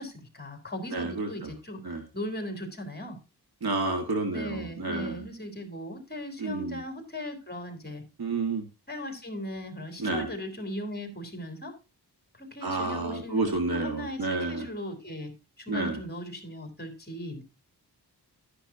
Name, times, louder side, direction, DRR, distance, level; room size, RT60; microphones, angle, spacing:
voice 1, 0.0-1.9 2.1-3.2 3.8-3.9 4.3-8.0 8.9-11.8 12.4-15.3 15.7-17.4, left 1 dB, 25° left, 3.5 m, -38 dB
voice 2, 0.9-1.5 1.8-2.0 3.6-5.3 6.4-6.8 8.2-8.7 10.0-10.3 12.6-14.7 15.7-16.0, right 3 dB, 65° right, 1.9 m, -30 dB
12.5 x 10.5 x 2.8 m
wide cardioid pair, 120°, 39 cm